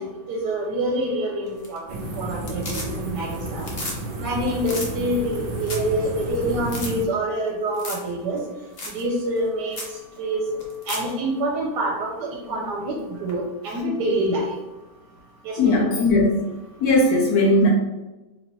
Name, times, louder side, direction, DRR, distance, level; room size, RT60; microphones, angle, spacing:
voice 1, 0.0-3.6 4.2-8.4 8.9-9.8 10.2-10.4 10.9-12.1 12.5-12.9 13.2-14.4 15.4-15.8, right 1 dB, 90° right, -2 dB, 1.3 m, -26 dB
sound 1, 1.5-2.0 2.3-3.2 3.5-4.0 4.3-4.4 4.6-4.9 5.3-5.4 5.6-5.9 6.2-6.3 6.6-6.9 7.7-8.1 8.4-8.5 8.8-9.0 9.4-9.5 9.7-9.9 10.6-11.1 13.3-13.4, left 2 dB, 50° left, 0.8 m, -33 dB
sound 2, 1.9-7.0, right 2 dB, 70° right, 0.5 m, -31 dB
voice 2, 15.6-16.5 16.8-17.7, left 2 dB, 70° left, 0 dB, 1.0 m, -18 dB
3.2 x 2.8 x 4.3 m, 1.1 s
omnidirectional pair, 1.8 m